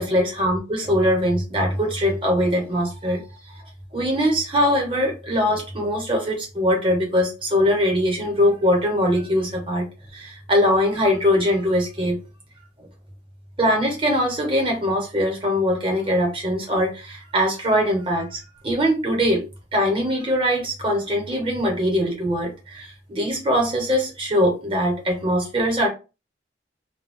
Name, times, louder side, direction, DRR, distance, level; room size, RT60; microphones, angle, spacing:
voice 1, 0.0-3.2 3.9-9.9 10.1-12.2 13.6-19.5 19.7-25.9, equal, 30° right, 0.9 m, -22 dB
2.3 x 2.2 x 3.6 m
head